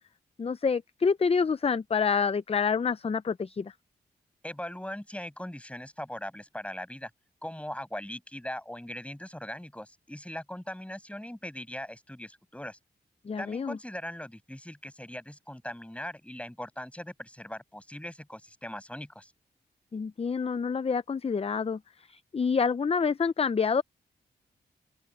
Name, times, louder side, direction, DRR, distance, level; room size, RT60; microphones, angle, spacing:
voice 1, 0.4-3.7 13.3-13.8 19.9-21.8 22.1-23.8, left 5 dB, 35° left, 0.6 m, -27 dB
voice 2, 4.4-7.1 7.4-12.8 13.4-19.3, left 1 dB, 5° left, 6.9 m, -40 dB
open air
cardioid pair, 65°, 18 cm